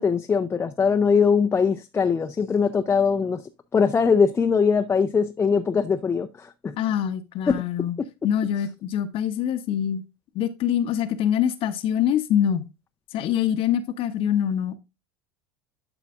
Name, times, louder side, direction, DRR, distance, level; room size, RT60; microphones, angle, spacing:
voice 1, 0.0-3.4 3.7-6.7 7.5-7.6, left 5 dB, 20° left, 0.6 m, -21 dB
voice 2, 6.8-8.0 8.2-10.0 10.3-12.6 13.1-14.8, left 9 dB, 50° left, 0.9 m, -24 dB
11.5 x 5.0 x 2.4 m
hypercardioid pair, 80°, 12 cm